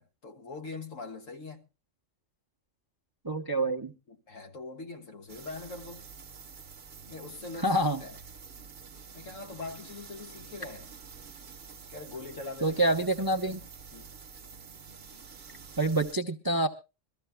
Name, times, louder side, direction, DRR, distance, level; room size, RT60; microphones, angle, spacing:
voice 1, 0.0-1.6 4.1-6.0 7.1-8.2 9.1-10.9 11.9-13.6 13.9-14.1, left 3 dB, 75° left, 1.9 m, -42 dB
voice 2, 3.2-3.9 7.6-8.0 12.6-13.6 15.8-16.7, right 1 dB, 25° right, 0.6 m, -27 dB
sound 1, 5.3-16.1, right 5 dB, 50° right, 1.1 m, -48 dB
23.0 x 14.0 x 2.2 m
omnidirectional pair, 1.4 m